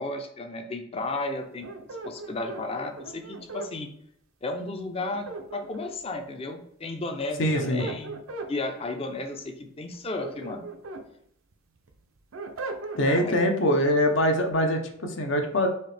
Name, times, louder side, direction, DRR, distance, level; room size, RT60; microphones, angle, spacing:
voice 1, 0.0-1.7 2.0-3.9 4.4-5.3 5.5-8.2 8.5-10.6 13.2-13.4, left 2 dB, 30° left, 5 dB, 0.5 m, -33 dB
sound 1, 1.6-3.7 5.0-6.1 7.3-8.5 9.9-11.1 11.5-13.3, right 3 dB, 75° right, 0.6 m, -38 dB
voice 2, 7.4-7.9 13.0-15.7, equal, 65° left, 4 dB, 0.7 m, -23 dB
4.3 x 2.8 x 3.3 m, 0.70 s
head